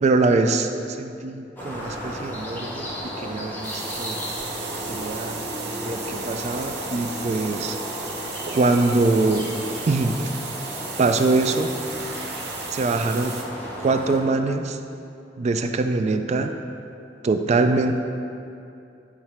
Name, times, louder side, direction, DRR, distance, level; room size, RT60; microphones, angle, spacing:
voice 1, 0.0-2.9 3.2-4.3 4.9-5.3 5.6-7.8 8.5-9.5 9.9-10.2 11.0-11.7 12.7-13.4 13.8-14.8 15.4-16.5 17.2-18.0, right 3 dB, 40° right, 7 dB, 0.3 m, -23 dB
sound 1, 1.6-14.2, equal, 10° left, 0.9 m, -34 dB
sound 2, 3.6-13.4, right 5 dB, 65° right, 0.7 m, -36 dB
8.7 x 3.7 x 4.4 m, 2.6 s
head